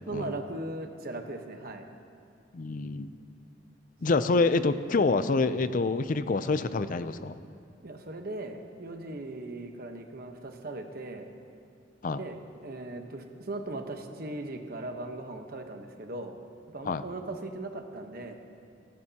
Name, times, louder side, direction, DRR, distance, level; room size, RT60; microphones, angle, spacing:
voice 1, 0.1-1.9 7.8-11.3 12.2-16.4 16.7-18.4, right 2 dB, 55° right, 5 dB, 1.1 m, -38 dB
voice 2, 2.5-3.1 4.0-7.3 12.0-12.2 16.8-17.0, left 3 dB, 50° left, 13 dB, 0.5 m, -26 dB
28.5 x 11.0 x 2.9 m, 2.3 s
head